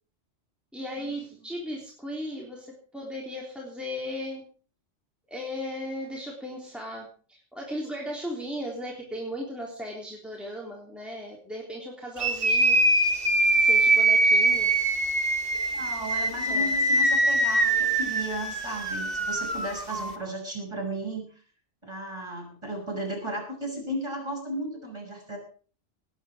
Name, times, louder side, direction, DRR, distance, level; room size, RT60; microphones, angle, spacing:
voice 1, 0.7-4.4 5.3-12.8 13.6-14.9 16.5-16.8, equal, ahead, -3 dB, 3.5 m, -36 dB
sound 1, 12.2-20.1, right 2 dB, 50° right, 2.6 m, -23 dB
voice 2, 15.7-21.3 21.8-25.4, right 1 dB, 20° right, 0 dB, 6.9 m, -35 dB
19.0 x 11.0 x 5.1 m, 0.41 s
omnidirectional pair, 1.2 m